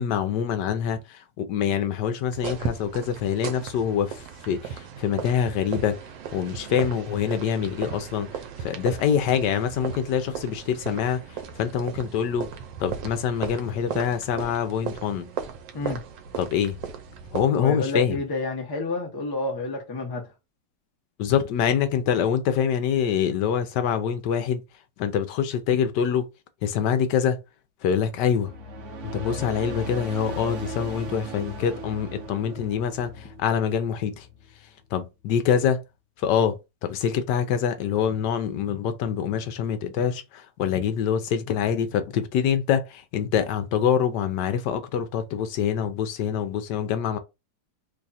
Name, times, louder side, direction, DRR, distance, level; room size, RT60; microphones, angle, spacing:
voice 1, 0.0-6.0 6.3-12.5 12.8-15.3 16.4-16.8 17.3-18.2 21.2-24.6 25.0-26.3 26.6-27.4 27.8-28.5 29.0-34.3 34.9-35.8 36.2-47.2, left 8 dB, 75° left, 1.2 m, -25 dB
sound 1, 2.3-17.4, right 7 dB, 80° right, 1.3 m, -36 dB
voice 2, 17.6-20.3, left 2 dB, 25° left, 0.5 m, -29 dB
sound 2, 28.1-34.7, equal, 60° right, 0.8 m, -37 dB
3.2 x 2.3 x 4.0 m
omnidirectional pair, 2.0 m